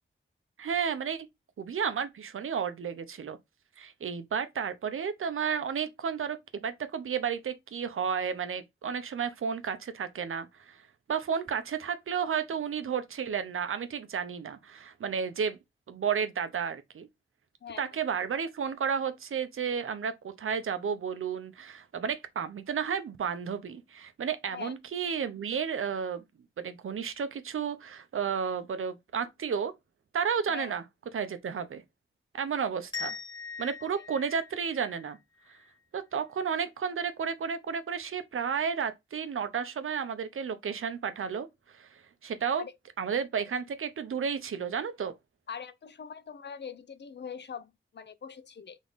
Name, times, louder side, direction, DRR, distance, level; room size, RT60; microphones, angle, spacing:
voice 1, 0.6-1.3 1.6-3.4 3.8-10.8 11.1-15.6 15.9-17.1 17.8-26.2 26.6-29.7 30.1-30.8 31.1-31.8 32.3-33.2 33.6-35.2 35.9-42.6 43.0-45.1, right 7 dB, 90° right, 0.7 m, -32 dB
sound 1, 32.9-35.7, left 5 dB, 20° left, 1.3 m, -41 dB
voice 2, 45.5-48.8, left 7 dB, 60° left, 0.6 m, -42 dB
3.6 x 3.6 x 3.9 m
wide cardioid pair, 125°, 21 cm